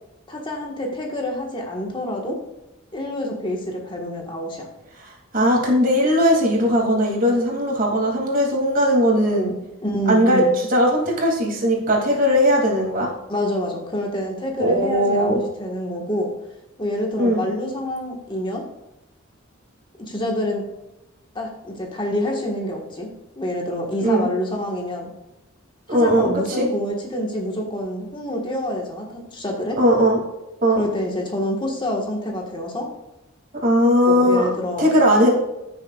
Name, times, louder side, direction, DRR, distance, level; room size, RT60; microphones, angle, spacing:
voice 1, 0.3-2.4 2.9-4.7 9.8-10.5 13.3-16.3 16.8-18.6 20.1-20.6 21.3-25.1 25.9-29.8 30.8-32.9 34.1-34.9, equal, 25° left, 0 dB, 1.5 m, -27 dB
voice 2, 5.0-9.5 10.1-13.1 14.6-15.4 17.2-17.4 24.0-24.3 25.9-26.7 29.8-30.2 30.6-30.8 33.6-34.4 34.8-35.3, equal, 45° right, -1 dB, 2.6 m, -18 dB
15.0 x 6.7 x 2.4 m, 0.96 s
head